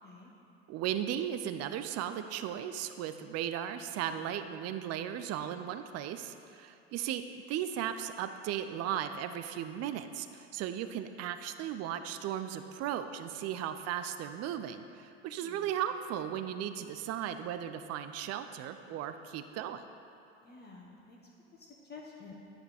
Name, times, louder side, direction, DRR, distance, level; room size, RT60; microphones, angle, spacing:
voice 1, 0.7-7.2 7.5-19.9, right 10 dB, 45° right, 9 dB, 0.5 m, -36 dB
voice 2, 15.2-15.7 20.4-21.2 21.5-22.3, left 4 dB, 30° left, -3 dB, 1.2 m, -51 dB
10.0 x 5.2 x 4.3 m, 2.7 s
hypercardioid pair, 65°, 34 cm